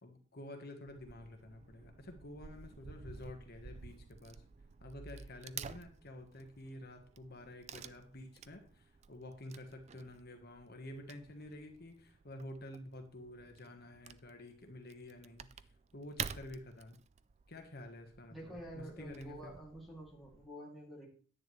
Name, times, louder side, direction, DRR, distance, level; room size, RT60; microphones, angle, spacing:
voice 1, 0.0-4.4 4.8-15.5 15.9-17.0 17.5-19.5, left 1 dB, 50° left, 5 dB, 1.3 m, -50 dB
Wood / Tearing, 0.9-20.5, right 7 dB, 35° right, 0.3 m, -51 dB
voice 2, 18.3-21.1, equal, ahead, -2 dB, 2.6 m, -49 dB
10.0 x 9.4 x 3.2 m, 0.42 s
head